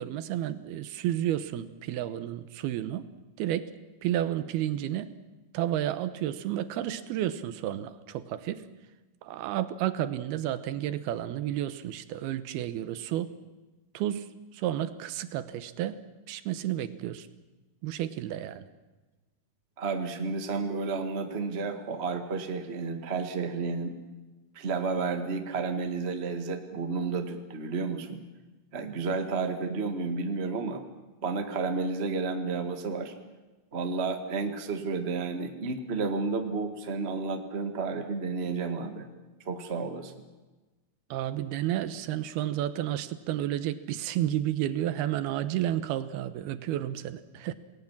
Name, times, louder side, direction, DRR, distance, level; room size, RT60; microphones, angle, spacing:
voice 1, 0.0-3.1 3.4-3.7 4.0-5.2 5.5-8.6 9.2-13.3 13.9-17.3 17.8-18.7 41.1-47.5, right 12 dB, 80° right, 12 dB, 2.9 m, -31 dB
voice 2, 19.8-23.9 24.5-28.2 28.7-30.8 31.2-33.1 33.7-39.1 39.4-40.1, right 4 dB, 40° right, 6 dB, 0.9 m, -31 dB
28.0 x 19.5 x 7.4 m, 1.2 s
omnidirectional pair, 4.6 m